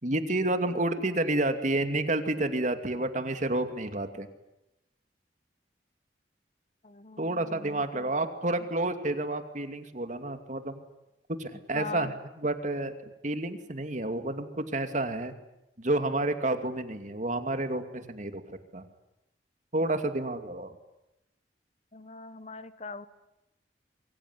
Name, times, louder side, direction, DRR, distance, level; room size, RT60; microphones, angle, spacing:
voice 1, 0.0-4.3 7.2-10.8 11.4-12.9 13.2-15.3 15.8-18.9 19.7-20.7, right 2 dB, 45° right, 8 dB, 2.5 m, -30 dB
voice 2, 6.8-8.1 11.7-12.1 21.9-23.1, left 4 dB, 40° left, 13 dB, 1.3 m, -42 dB
25.0 x 24.0 x 9.8 m, 0.90 s
head